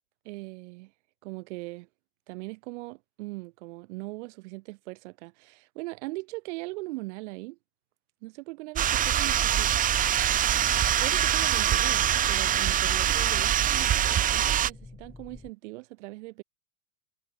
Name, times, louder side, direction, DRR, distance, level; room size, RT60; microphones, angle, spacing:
voice 1, 0.2-0.9 1.2-1.9 2.3-7.6 8.2-9.7 10.7-16.4, right 23 dB, 65° right, 4.1 m, -40 dB
sound 1, 8.8-14.7, right 10 dB, 20° right, 0.6 m, -24 dB
sound 2, 9.7-15.5, left 3 dB, 10° left, 4.2 m, -50 dB
hypercardioid pair, 110°, 37 cm